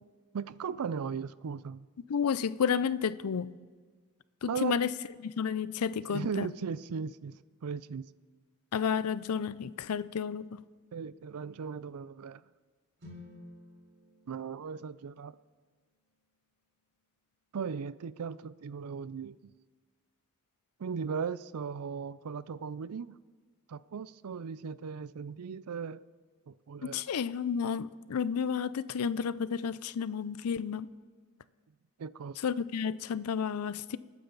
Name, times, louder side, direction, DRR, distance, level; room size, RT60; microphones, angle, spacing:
voice 1, 0.3-1.9 4.5-5.0 6.1-8.1 10.9-12.4 14.3-15.4 17.5-19.4 20.8-23.2 23.7-26.0 26.5-27.0 32.0-32.4, right 6 dB, 85° right, 18 dB, 0.4 m, -37 dB
voice 2, 2.1-3.6 4.4-4.9 5.2-6.5 8.7-10.6 26.8-30.9 32.4-34.0, left 7 dB, 85° left, 18 dB, 0.5 m, -31 dB
sound 1, 13.0-17.0, left 2 dB, 55° right, 4.2 m, -55 dB
27.5 x 9.6 x 3.9 m, 1.5 s
head